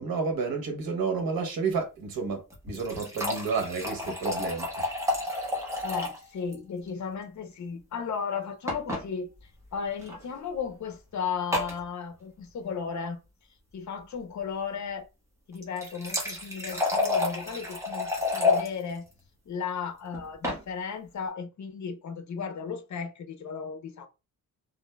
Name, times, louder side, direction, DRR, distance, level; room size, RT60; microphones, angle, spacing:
voice 1, 0.0-4.7, right 5 dB, 85° right, 1.1 m, -30 dB
sound 1, 2.5-6.2 6.5-6.6 6.9-7.0 8.7-9.0 10.0-10.2 11.5-11.8 15.6-18.7 20.1-20.6, left 3 dB, 10° right, 1.1 m, -29 dB
voice 2, 5.8-13.2 13.7-15.1 15.5-19.1 19.5-24.1, left 6 dB, 55° left, 0.7 m, -35 dB
3.5 x 2.6 x 2.2 m
wide cardioid pair, 115°, 34 cm